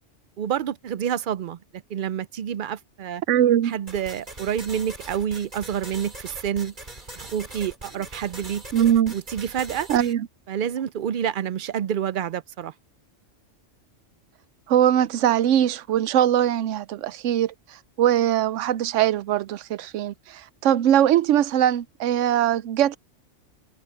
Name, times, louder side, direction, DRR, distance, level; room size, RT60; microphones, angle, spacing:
voice 1, 0.4-3.2 3.6-6.7 7.1-9.9 10.5-12.7, right 9 dB, 60° right, 0.6 m, -28 dB
voice 2, 3.3-3.7 8.7-9.1 9.9-10.3 14.7-17.5 18.0-23.0, right 11 dB, 85° right, 0.9 m, -21 dB
sound 1, 3.9-10.1, right 1 dB, 40° right, 3.5 m, -41 dB
omnidirectional pair, 1.2 m